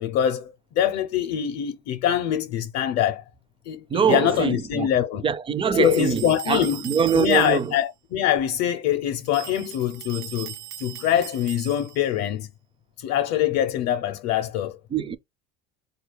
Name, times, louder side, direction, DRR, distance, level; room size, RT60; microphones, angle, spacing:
voice 1, 0.0-3.2 3.7-5.2 5.7-6.8 7.1-10.5 10.8-12.5 13.0-14.8, left 10 dB, 60° left, 0.7 m, -24 dB
voice 2, 3.9-4.9 5.2-7.7 14.9-15.2, right 7 dB, 20° right, 0.4 m, -23 dB
sound 1, 5.8-7.8 9.2-12.1, right 14 dB, 70° right, 0.6 m, -39 dB
3.9 x 2.3 x 3.3 m
supercardioid pair, 90°, 29 cm